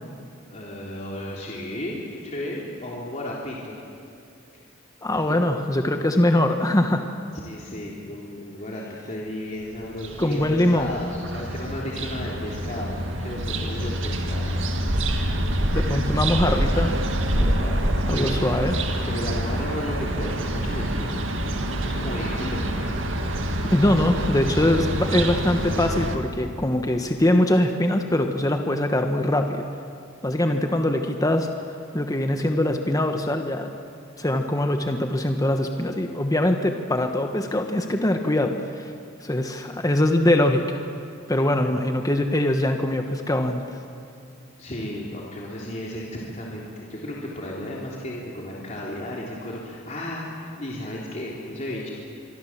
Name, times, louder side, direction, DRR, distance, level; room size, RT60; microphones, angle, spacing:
voice 1, 0.5-3.8 7.3-14.6 17.3-18.5 19.1-21.3 21.8-22.9 44.6-51.9, left 1 dB, 40° left, -4 dB, 3.4 m, -34 dB
voice 2, 5.0-7.1 10.2-10.9 15.7-16.9 18.1-18.7 23.7-29.7 30.2-31.5 31.9-33.7 34.2-38.9 39.2-40.8 41.3-43.6, left 1 dB, 20° left, 5 dB, 1.2 m, -22 dB
sound 1, 9.7-26.2, right 1 dB, 75° right, 2.1 m, -26 dB
25.0 x 24.0 x 7.4 m, 2.5 s
head